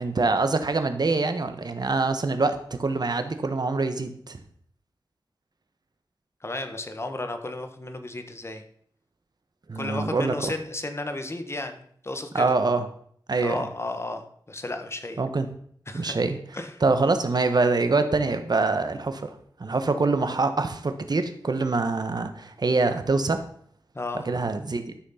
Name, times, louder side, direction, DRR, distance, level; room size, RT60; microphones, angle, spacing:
voice 1, 0.0-4.4 9.7-10.5 12.3-12.9 13.3-13.7 15.2-15.5 15.9-16.4 16.8-19.3 19.6-23.4 24.2-24.8, right 3 dB, 55° right, 8 dB, 1.3 m, -25 dB
voice 2, 6.4-8.6 9.7-12.5 13.4-15.2 15.9-16.1 16.5-16.8 23.9-24.3, left 2 dB, 30° left, 6 dB, 1.4 m, -33 dB
13.0 x 6.4 x 5.8 m, 0.62 s
wide cardioid pair, 75°, 8 cm